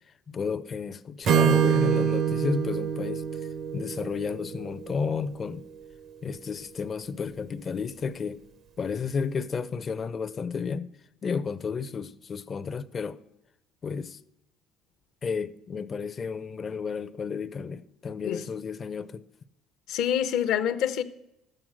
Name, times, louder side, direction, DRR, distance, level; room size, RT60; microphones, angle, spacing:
voice 1, 0.3-3.2 3.7-5.7 6.2-8.4 8.8-10.9 11.2-13.2 13.8-14.2 15.2-19.2, left 5 dB, 35° left, 0.5 m, -32 dB
Acoustic guitar / Strum, 1.2-5.2, right 9 dB, 55° right, 0.7 m, -26 dB
voice 2, 19.9-21.0, left 10 dB, 70° left, 0.8 m, -26 dB
12.5 x 7.7 x 6.3 m
cardioid pair, 105°, 0 cm